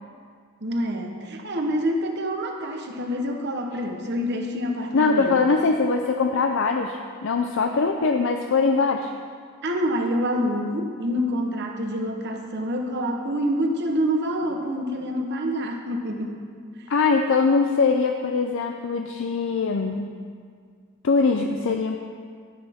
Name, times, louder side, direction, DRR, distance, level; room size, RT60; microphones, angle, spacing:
voice 1, 0.6-5.4 9.6-16.4, equal, 50° right, 3 dB, 1.0 m, -27 dB
voice 2, 4.9-9.1 16.9-20.1 21.0-22.0, left 4 dB, 60° left, 4 dB, 0.5 m, -22 dB
11.5 x 10.5 x 3.5 m, 2.1 s
head